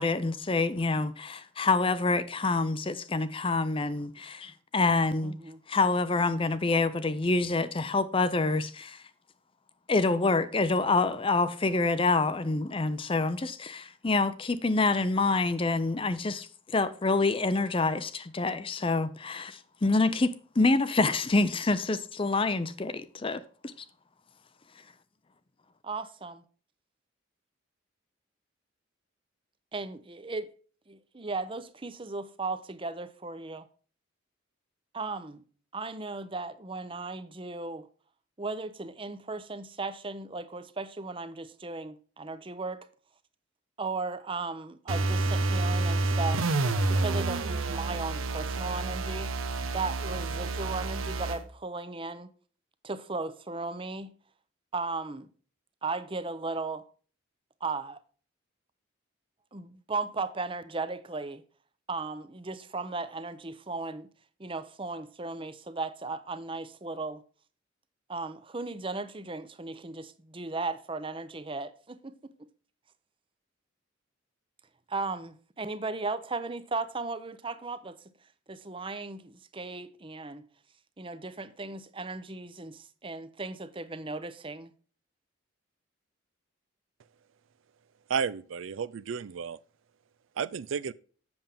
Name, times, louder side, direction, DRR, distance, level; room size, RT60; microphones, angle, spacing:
voice 1, 0.0-5.3 5.7-9.0 9.9-23.7, left 3 dB, 25° left, 0.5 m, -27 dB
voice 2, 5.2-5.6 25.8-26.4 29.7-30.5 30.9-33.7 34.9-35.4 35.7-37.9 38.4-42.8 43.8-46.4 46.9-49.3 49.7-52.3 52.8-54.1 54.7-55.3 55.8-56.8 57.6-58.0 59.5-61.4 61.9-64.1 64.4-67.2 68.1-72.2 74.9-78.0 78.5-80.5 81.0-84.7, right 3 dB, 25° right, 0.7 m, -36 dB
sound 1, 44.9-51.4, right 2 dB, 90° right, 0.9 m, -29 dB
voice 3, 88.1-89.6 90.4-90.9, right 6 dB, 75° right, 0.4 m, -32 dB
7.8 x 7.1 x 3.5 m
head